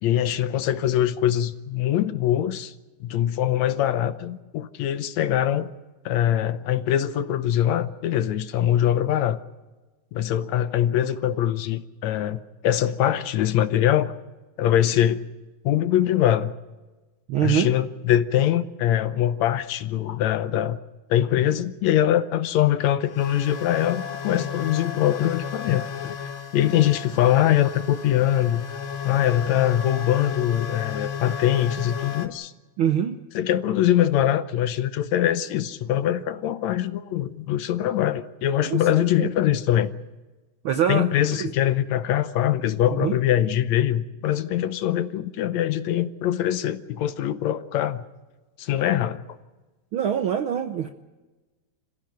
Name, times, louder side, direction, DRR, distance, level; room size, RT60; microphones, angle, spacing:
voice 1, 0.0-2.7 3.0-5.7 6.1-9.4 10.1-14.1 14.6-15.3 15.6-16.5 17.4-20.8 21.1-28.7 29.1-32.5 33.3-39.9 40.9-48.1 48.6-49.2, left 11 dB, 75° left, 2.0 m, -23 dB
voice 2, 17.3-17.7 32.8-33.2 38.6-38.8 39.2-39.3 40.6-41.1 41.4-41.5 43.0-43.2 49.9-50.9, right 9 dB, 70° right, 1.2 m, -23 dB
sound 1, 18.2-18.3 19.5-19.6 20.2-20.3 21.3-21.4 23.0-32.3, left 7 dB, 55° left, 1.7 m, -33 dB
27.0 x 15.5 x 7.8 m
omnidirectional pair, 3.4 m